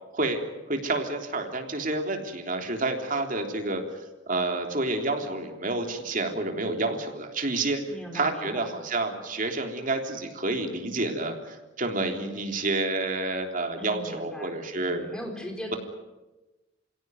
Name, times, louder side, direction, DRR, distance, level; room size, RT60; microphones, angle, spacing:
voice 1, 0.7-3.8 4.3-7.8 8.1-15.1 15.7-15.8, right 2 dB, 45° right, 4 dB, 3.4 m, -29 dB
voice 2, 7.9-8.8 13.8-15.8, equal, 5° left, 2 dB, 4.4 m, -39 dB
28.5 x 17.0 x 9.4 m, 1.1 s
head